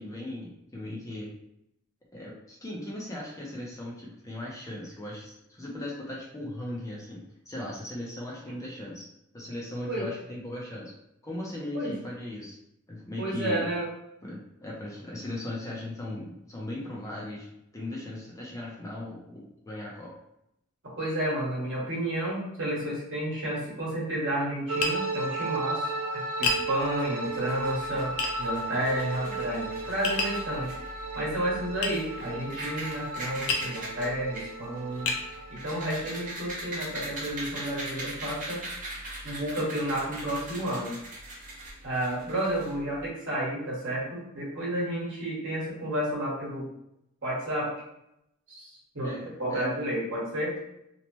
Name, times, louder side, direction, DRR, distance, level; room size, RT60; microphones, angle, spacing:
voice 1, 0.0-1.3 2.1-9.1 9.3-10.9 11.2-12.6 12.9-13.7 14.2-17.5 17.7-20.1 49.0-49.7, left 1 dB, 15° left, -4 dB, 0.5 m, -38 dB
voice 2, 13.2-13.9 21.0-28.1 28.4-30.7 31.1-35.1 35.5-38.6 39.2-40.9 41.8-46.7 47.2-47.7 48.5-49.1 49.4-50.6, right 1 dB, 55° right, -5 dB, 1.2 m, -31 dB
sound 1, 24.7-36.3, right 3 dB, 75° right, 0.4 m, -35 dB
Tap, 24.8-25.0 26.4-26.7 28.2-28.4 30.0-30.4 31.8-32.0 33.5-33.7 34.4-34.5 35.1-35.3, left 3 dB, 70° left, 0.5 m, -28 dB
sound 2, 26.8-43.1, right 1 dB, 35° right, 0.8 m, -41 dB
2.9 x 2.1 x 3.0 m, 0.81 s
head